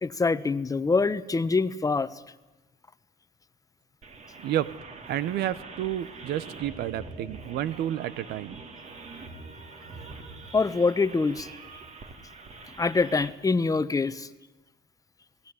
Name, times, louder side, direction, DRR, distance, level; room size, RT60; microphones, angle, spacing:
voice 1, 0.0-2.1 10.5-11.5 12.8-14.3, left 4 dB, 20° left, 14 dB, 1.0 m, -25 dB
sound 1, 4.0-13.3, right 3 dB, 45° right, 3.9 m, -44 dB
voice 2, 4.4-4.7 5.1-8.6, right 12 dB, 75° right, 17 dB, 1.2 m, -30 dB
28.0 x 18.5 x 9.8 m, 1.1 s
cardioid pair, 110°, 17 cm